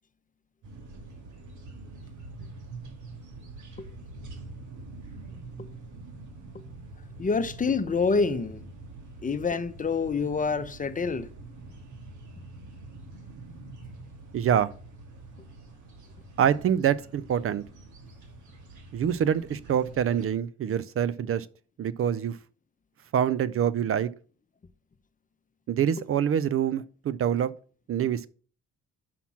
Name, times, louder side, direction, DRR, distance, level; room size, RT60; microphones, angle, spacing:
sound 1, 0.6-20.2, right 2 dB, 75° right, 2.2 m, -45 dB
voice 1, 7.2-8.6 9.2-11.3, left 4 dB, 25° left, 0.8 m, -27 dB
voice 2, 14.3-14.7 16.4-17.6 18.9-21.5 21.8-22.4 23.1-24.1 25.7-27.5 27.9-28.3, right 9 dB, 45° right, 0.4 m, -25 dB
5.9 x 5.8 x 5.8 m
cardioid pair, 90°, 30 cm